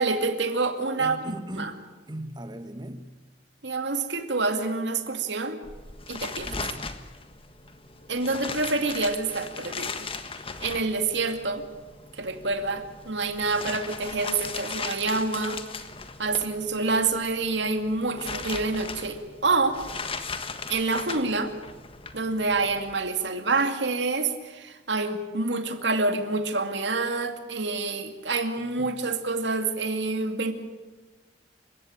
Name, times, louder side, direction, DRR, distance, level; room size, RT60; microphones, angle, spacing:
voice 1, 0.0-1.2 1.5-1.7 3.6-5.6 6.1-6.5 8.1-10.1 10.6-11.7 12.1-15.6 16.2-19.8 20.7-21.5 22.1-30.5, right 3 dB, 80° right, 7 dB, 2.4 m, -27 dB
voice 2, 1.0-3.1 6.0-6.1 6.4-6.9 28.8-28.9, right 1 dB, 25° right, 9 dB, 1.6 m, -39 dB
sound 1, 5.6-22.9, left 4 dB, 30° left, 1.5 m, -38 dB
28.5 x 16.0 x 8.9 m, 1.2 s
head